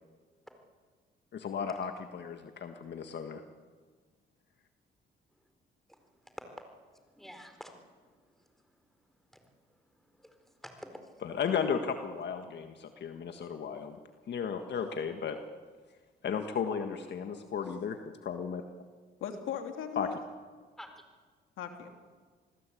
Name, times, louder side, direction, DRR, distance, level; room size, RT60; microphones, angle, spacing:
voice 1, 1.3-3.4 11.2-14.0 14.3-15.4 16.2-18.6 19.9-20.1, left 6 dB, 60° left, 6 dB, 1.7 m, -34 dB
voice 2, 7.2-7.7 10.2-11.2 20.8-21.0, equal, ahead, 6 dB, 4.4 m, -48 dB
voice 3, 19.2-20.2 21.6-21.9, left 8 dB, 85° left, 5 dB, 2.8 m, -38 dB
27.0 x 19.5 x 8.6 m, 1.5 s
cardioid pair, 90°, 20 cm